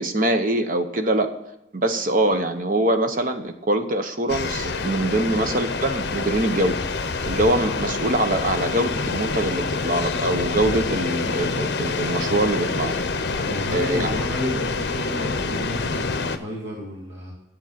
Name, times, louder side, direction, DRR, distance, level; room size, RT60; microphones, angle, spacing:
voice 1, 0.0-1.3 1.7-6.8 7.2-12.9 13.7-14.1, right 1 dB, 45° right, 7 dB, 0.8 m, -23 dB
sound 1, 4.3-16.4, left 4 dB, 55° left, 0.6 m, -27 dB
voice 2, 13.4-17.3, equal, 65° right, -4 dB, 2.4 m, -31 dB
10.0 x 7.8 x 5.8 m, 0.85 s
head